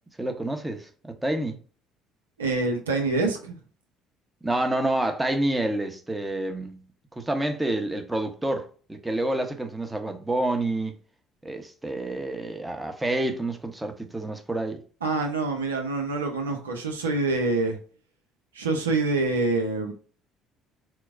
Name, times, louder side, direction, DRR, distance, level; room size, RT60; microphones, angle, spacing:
voice 1, 0.2-1.6 4.4-6.8 7.1-10.9 11.4-14.8, right 1 dB, 15° right, 0.8 m, -28 dB
voice 2, 2.4-3.5 15.0-17.8 18.5-19.9, right 3 dB, 90° right, 0.6 m, -26 dB
4.4 x 2.1 x 2.5 m
hypercardioid pair, 55°, 0 cm